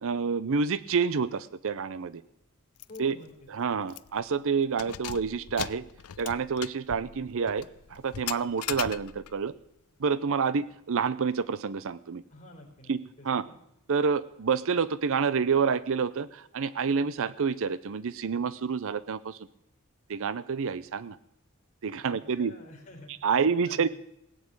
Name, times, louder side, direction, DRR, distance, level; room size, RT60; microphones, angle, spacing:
voice 1, 0.0-2.2 3.0-3.1 3.5-5.8 6.2-7.6 7.9-9.5 10.0-12.2 12.9-13.0 13.2-13.4 13.9-19.4 20.1-21.2 21.8-22.5 23.2-23.9, right 5 dB, 65° right, 17 dB, 0.6 m, -28 dB
Keys jangling, 2.8-3.0 3.3-3.4 3.9-4.2 4.7-9.4, left 11 dB, 80° left, 0.5 m, -39 dB
voice 2, 2.9-3.7 12.3-13.6 22.0-23.9, left 2 dB, 35° left, -1 dB, 3.6 m, -49 dB
17.0 x 8.7 x 8.6 m, 0.80 s
head